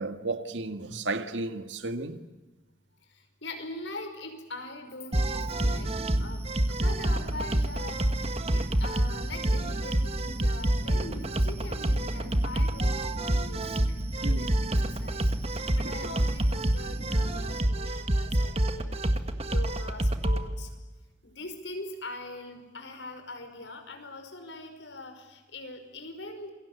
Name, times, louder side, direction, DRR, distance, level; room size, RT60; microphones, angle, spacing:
voice 1, 0.0-2.2 14.2-14.5 15.8-15.9, right 2 dB, 90° right, 2.0 m, -33 dB
voice 2, 3.4-5.9 6.2-14.5 14.8-15.3 15.7-19.1 19.4-20.7 21.2-26.5, left 2 dB, 85° left, 5.5 m, -42 dB
sound 1, 5.1-20.4, right 1 dB, 35° right, 1.6 m, -27 dB
28.0 x 22.5 x 8.3 m
head